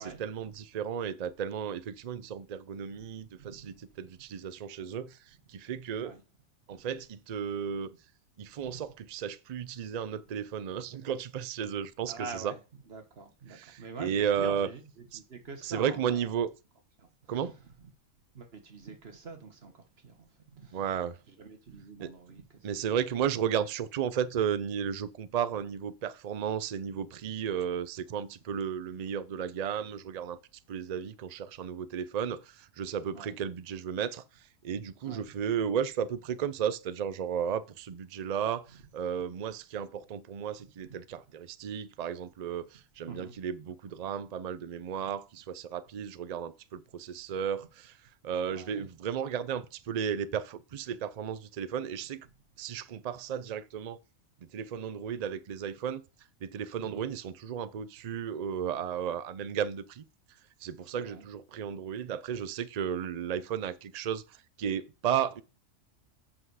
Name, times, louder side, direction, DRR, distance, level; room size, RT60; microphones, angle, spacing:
voice 1, 0.0-6.2 6.7-7.9 8.4-12.5 13.5-14.7 15.1-15.2 15.6-16.5 17.3-17.5 20.7-21.2 22.0-22.1 22.6-30.4 30.7-34.2 34.6-48.0 48.2-52.3 52.6-54.0 54.4-56.0 56.4-60.0 60.6-65.4, right 8 dB, 80° right, 0.3 m, -34 dB
voice 2, 3.4-3.7 6.0-6.2 6.7-6.8 8.6-8.8 12.1-12.6 12.9-16.3 17.0-17.5 18.3-20.8 21.3-22.8 33.1-33.4 35.0-35.3 43.1-43.4 48.5-48.9 49.2-49.3 52.2-52.3 56.8-57.1 60.8-61.3, right 4 dB, 50° right, 1.5 m, -46 dB
7.8 x 5.8 x 4.8 m
omnidirectional pair, 1.4 m